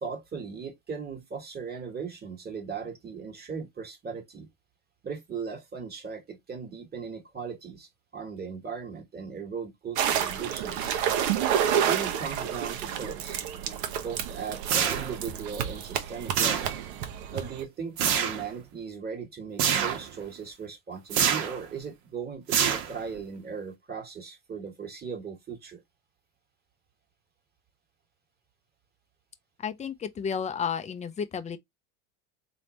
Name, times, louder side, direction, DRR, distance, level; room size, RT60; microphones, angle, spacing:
voice 1, 0.0-4.5 5.0-10.9 11.7-13.4 14.0-16.7 17.3-25.8, right 6 dB, 20° right, 1.5 m, -38 dB
sound 1, 10.0-17.6, right 9 dB, 75° right, 1.1 m, -30 dB
sound 2, 14.7-15.3 16.3-17.0 18.0-18.5 19.6-20.1 21.1-21.6 22.5-23.2, right 8 dB, 60° right, 1.3 m, -26 dB
voice 2, 29.6-31.6, left 7 dB, 15° left, 0.5 m, -32 dB
3.9 x 3.5 x 3.0 m
supercardioid pair, 120°, 42 cm